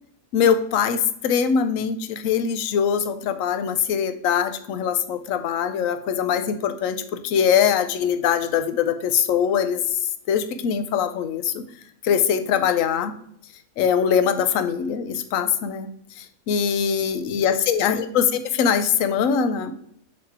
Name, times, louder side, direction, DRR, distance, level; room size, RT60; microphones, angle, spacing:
voice 1, 0.3-9.8 10.3-11.6 12.0-13.1 13.8-15.9 16.2-19.7, left 7 dB, 70° left, 10 dB, 0.9 m, -22 dB
7.1 x 3.1 x 4.6 m, 0.68 s
omnidirectional pair, 1.5 m